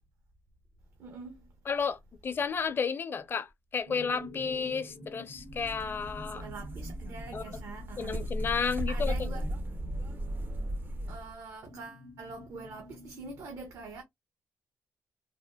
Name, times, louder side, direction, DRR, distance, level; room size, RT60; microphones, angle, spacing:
voice 1, 1.0-1.5 6.3-8.2 8.9-9.5 11.1-14.0, right 4 dB, 70° right, 0.8 m, -44 dB
voice 2, 1.7-6.5 7.3-7.4 8.0-9.1, left 5 dB, 40° left, 0.5 m, -32 dB
sound 1, 3.9-10.7 11.6-13.5, left 1 dB, 90° right, 1.7 m, -50 dB
sound 2, 5.4-11.3, equal, 35° right, 0.4 m, -36 dB
3.5 x 2.0 x 2.2 m
cardioid pair, 105°, 6 cm